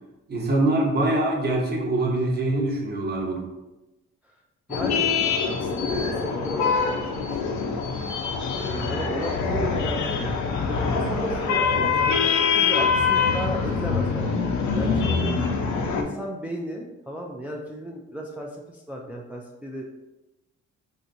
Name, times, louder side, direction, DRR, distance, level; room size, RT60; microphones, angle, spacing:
voice 1, 0.3-3.5, right 2 dB, 35° right, 0 dB, 0.9 m, -24 dB
sound 1, 4.7-16.0, left 5 dB, 70° left, 0.6 m, -24 dB
voice 2, 4.7-8.0 8.7-10.3 10.7-14.4 14.7-15.3 15.8-19.8, right 1 dB, 5° right, 0 dB, 0.3 m, -35 dB
4.3 x 2.6 x 2.6 m, 1.0 s
cardioid pair, 90°, 30 cm